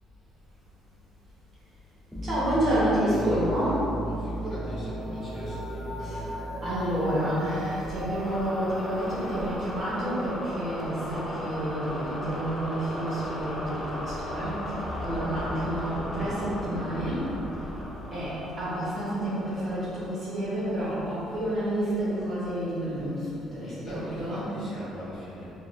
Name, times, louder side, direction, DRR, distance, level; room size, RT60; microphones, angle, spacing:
sound 1, 2.1-20.6, equal, ahead, 0.5 m, -35 dB
voice 1, 2.2-3.9 6.0-6.2 6.6-17.3 18.1-24.5, right 1 dB, 40° right, -10 dB, 1.1 m, -29 dB
voice 2, 4.0-6.0 23.6-25.5, equal, 55° left, -10 dB, 1.3 m, -40 dB
3.6 x 2.5 x 2.5 m, 2.9 s
cardioid pair, 110°, 0 cm